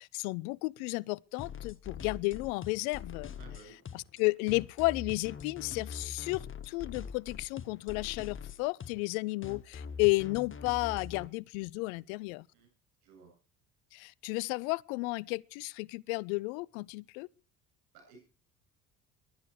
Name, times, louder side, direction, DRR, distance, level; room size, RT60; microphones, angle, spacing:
voice 1, 0.0-3.3 3.9-12.5 13.9-17.3, left 24 dB, 55° left, 0.6 m, -33 dB
sound 1, 1.4-11.3, left 6 dB, 25° left, 1.3 m, -43 dB
voice 2, 3.3-3.8 12.5-12.7 13.0-13.3 17.9-18.2, right 5 dB, 70° right, 7.8 m, -55 dB
22.5 x 9.8 x 4.7 m
figure-of-eight pair, 60°, 50 cm